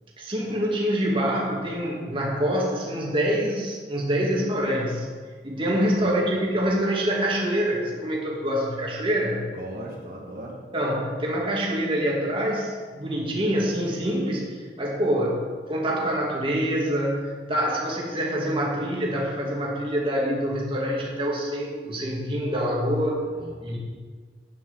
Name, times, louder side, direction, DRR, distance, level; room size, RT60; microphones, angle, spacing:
voice 1, 0.2-5.1 5.4-9.5 10.7-15.4 15.7-23.2 23.6-23.8, equal, 30° right, -3 dB, 2.5 m, -25 dB
voice 2, 5.9-6.5 9.5-10.6 23.2-23.8, right 1 dB, 55° right, -3 dB, 2.2 m, -39 dB
9.3 x 8.8 x 7.4 m, 1.5 s
head